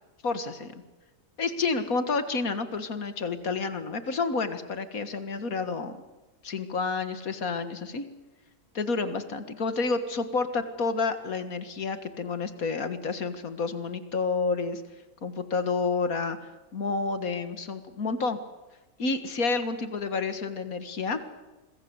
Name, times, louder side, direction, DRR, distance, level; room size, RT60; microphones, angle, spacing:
voice 1, 0.2-0.7 1.4-5.9 6.4-8.0 8.7-14.8 15.2-18.4 19.0-21.2, left 4 dB, 65° left, 10 dB, 2.1 m, -29 dB
26.5 x 21.0 x 8.0 m, 1.2 s
omnidirectional pair, 1.6 m